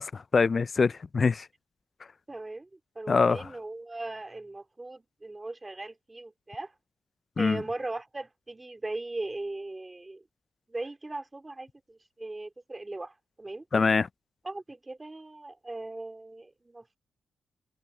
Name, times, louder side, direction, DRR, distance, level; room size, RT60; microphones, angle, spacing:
voice 1, 0.0-1.5 3.1-3.5 7.4-7.6 13.7-14.1, left 4 dB, 35° left, 0.4 m, -24 dB
voice 2, 2.3-6.7 7.4-10.2 10.7-13.6 14.4-17.0, right 2 dB, 15° right, 2.5 m, -39 dB
wide cardioid pair, 130°, 0 cm